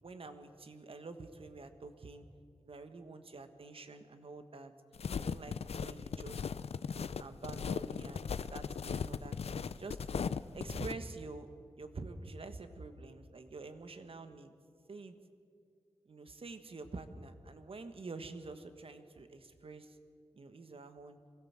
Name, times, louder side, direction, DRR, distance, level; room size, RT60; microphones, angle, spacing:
voice 1, 0.0-2.2 2.6-4.7 5.2-6.4 6.9-10.1 10.5-11.5 11.8-14.5 14.9-15.1 16.0-20.0 20.3-21.2, right 3 dB, 60° right, 9 dB, 1.5 m, -47 dB
sound 1, 4.9-10.9, left 6 dB, 75° left, 0.5 m, -38 dB
23.0 x 16.0 x 7.4 m, 2.3 s
wide cardioid pair, 70°, 11 cm